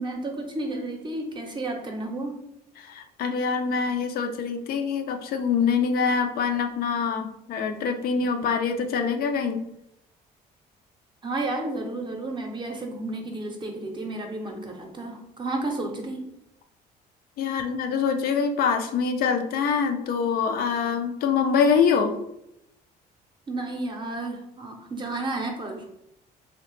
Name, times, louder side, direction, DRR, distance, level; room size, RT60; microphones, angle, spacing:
voice 1, 0.0-2.4 8.2-8.4 11.2-16.3 23.5-25.9, right 2 dB, 30° right, 2 dB, 0.6 m, -32 dB
voice 2, 2.8-9.6 17.4-22.1, left 6 dB, 65° left, 6 dB, 0.4 m, -25 dB
2.7 x 2.1 x 3.1 m, 0.80 s
cardioid pair, 110°, 17 cm